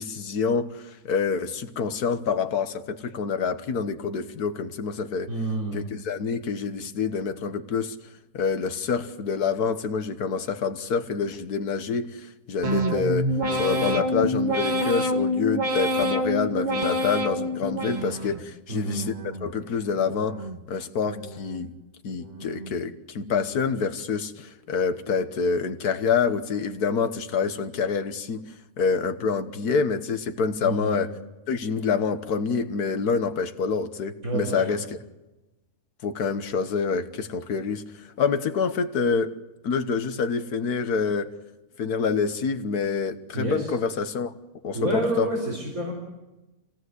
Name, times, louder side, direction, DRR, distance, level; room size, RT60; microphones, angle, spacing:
voice 1, 0.0-5.3 5.7-8.0 8.3-13.3 13.6-20.4 20.7-21.7 22.0-28.4 28.8-31.1 31.5-34.8 36.0-39.3 39.6-41.3 41.8-44.3 44.6-45.3, left 5 dB, 85° left, 1.7 m, -27 dB
voice 2, 5.3-5.9 18.7-19.0 30.6-31.0 34.2-34.8 43.3-43.7 44.7-45.9, right 2 dB, 65° right, 4.5 m, -29 dB
sound 1, 12.6-18.5 18.9-19.5 20.0-20.6 21.1-21.7 22.2-22.8 23.3-23.8, equal, 30° right, 1.6 m, -27 dB
26.5 x 17.5 x 8.0 m
omnidirectional pair, 1.6 m